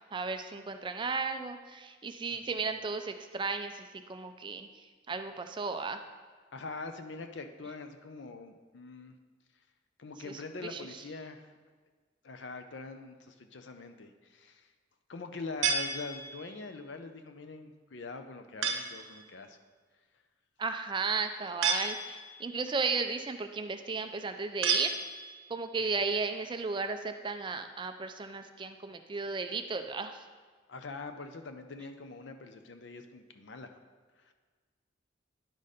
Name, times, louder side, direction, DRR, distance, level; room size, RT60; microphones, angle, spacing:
voice 1, 0.1-4.7 5.1-6.0 10.2-11.0 20.6-25.0 25.5-30.2, right 4 dB, 25° right, 8 dB, 0.4 m, -34 dB
voice 2, 6.5-9.1 10.0-11.4 12.2-14.6 15.1-19.6 30.7-33.8, left 3 dB, 70° left, 7 dB, 0.6 m, -43 dB
sound 1, 15.6-16.6 18.6-19.1 21.6-22.5 24.6-25.5, right 5 dB, 85° right, 0.8 m, -32 dB
10.5 x 4.1 x 5.0 m, 1.5 s
head